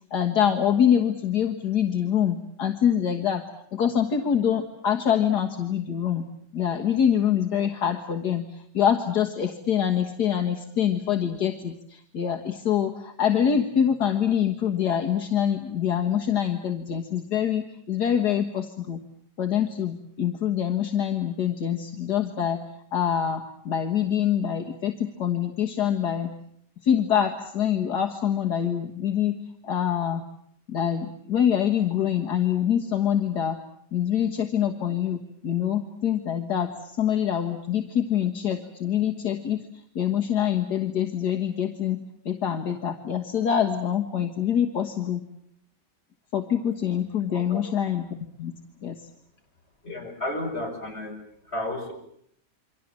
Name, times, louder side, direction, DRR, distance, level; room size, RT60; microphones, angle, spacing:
voice 1, 0.1-3.4 3.7-6.3 6.5-19.0 19.4-22.6 22.9-26.3 26.8-29.4 29.6-30.2 30.7-33.6 33.9-39.6 40.0-42.0 42.3-45.2 46.3-48.5 48.8-49.0, left 9 dB, 65° left, 2 dB, 2.1 m, -25 dB
voice 2, 49.8-51.2 51.5-51.9, left 1 dB, 35° left, 1 dB, 6.7 m, -32 dB
28.5 x 24.0 x 7.5 m, 0.70 s
omnidirectional pair, 1.9 m